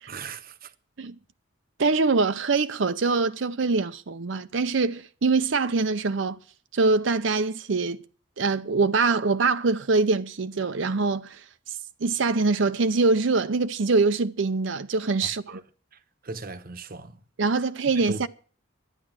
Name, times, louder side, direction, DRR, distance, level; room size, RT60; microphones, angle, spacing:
voice 1, 0.1-0.7 15.5-15.6 16.2-17.2 17.9-18.3, right 3 dB, 45° right, 1.0 m, -37 dB
voice 2, 1.8-6.4 6.7-8.0 8.4-11.4 12.0-15.6 17.4-18.3, right 3 dB, 65° right, 0.6 m, -24 dB
12.0 x 9.9 x 7.5 m
head